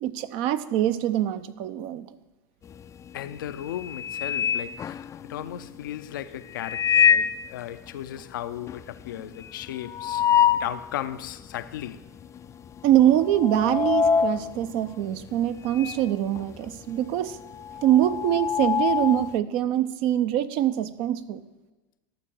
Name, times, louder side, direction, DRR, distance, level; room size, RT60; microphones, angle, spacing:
voice 1, 0.0-2.2 12.8-17.4 17.8-21.4, right 12 dB, 55° right, 0.6 m, -24 dB
sound 1, 2.7-3.1 3.5-5.5 6.5-7.5 7.9-8.0 8.2-8.3 8.7-10.8 11.3-11.4 12.2-12.5 12.8-16.1 16.4-19.3, left 8 dB, 25° left, 0.4 m, -25 dB
voice 2, 3.1-10.3 10.5-12.0, left 11 dB, 75° left, 0.5 m, -36 dB
12.0 x 4.5 x 7.7 m
hypercardioid pair, 90°, 11 cm